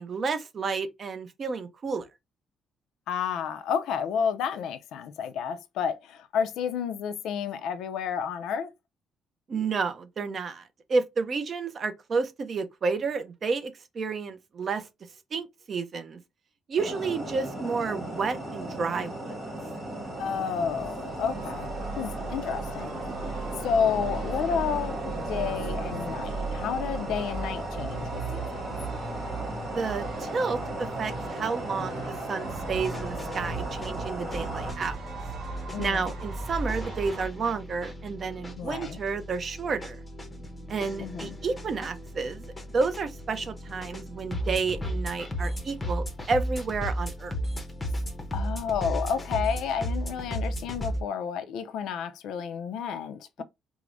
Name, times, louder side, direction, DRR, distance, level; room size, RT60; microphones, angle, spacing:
voice 1, 0.0-2.1 9.5-10.6 10.9-14.9 15.3-16.2 16.7-19.3 29.7-35.1 35.8-40.0 40.7-47.3, right 4 dB, 35° right, 0.4 m, -31 dB
voice 2, 3.1-8.7 20.2-21.7 22.0-22.9 23.2-28.8 35.7-36.1 38.6-39.0 41.0-41.4 48.3-53.4, left 7 dB, 75° left, 0.4 m, -31 dB
sound 1, 16.8-34.7, right 1 dB, 10° right, 1.0 m, -36 dB
sound 2, 20.1-37.3, right 3 dB, 60° right, 1.3 m, -37 dB
sound 3, 32.8-51.0, equal, 15° left, 0.6 m, -35 dB
4.6 x 2.0 x 2.5 m
cardioid pair, 165°, 0 cm